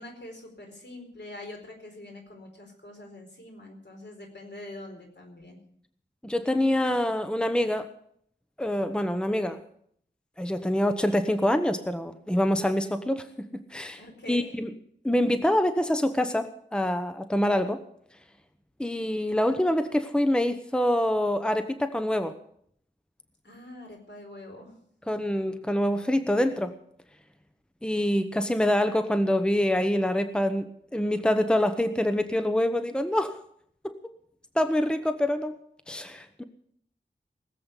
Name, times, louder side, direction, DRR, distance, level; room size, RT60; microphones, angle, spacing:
voice 1, 0.0-5.6 14.0-14.5 23.4-24.8, left 1 dB, 70° left, 2 dB, 4.5 m, -44 dB
voice 2, 6.2-7.9 8.6-9.6 10.4-13.3 13.7-14.0 14.3-14.7 15.0-17.8 18.8-22.3 25.1-26.7 27.8-33.4 33.8-34.0 34.5-35.5 35.9-36.4, left 1 dB, 5° left, 9 dB, 1.0 m, -25 dB
19.0 x 7.7 x 8.3 m, 0.67 s
wide cardioid pair, 70°, 19 cm